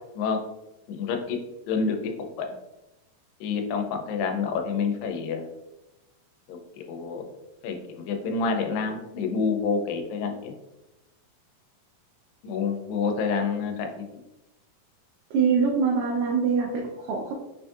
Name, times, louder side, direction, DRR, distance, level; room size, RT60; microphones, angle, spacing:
voice 1, 0.9-1.4 1.7-2.1 2.4-2.5 3.4-5.4 6.5-6.6 6.9-7.3 7.6-10.5 12.4-14.1, left 5 dB, 90° left, 4 dB, 2.3 m, -28 dB
voice 2, 15.3-17.3, right 5 dB, 80° right, -2 dB, 2.2 m, -24 dB
5.6 x 2.6 x 2.3 m, 0.96 s
omnidirectional pair, 4.0 m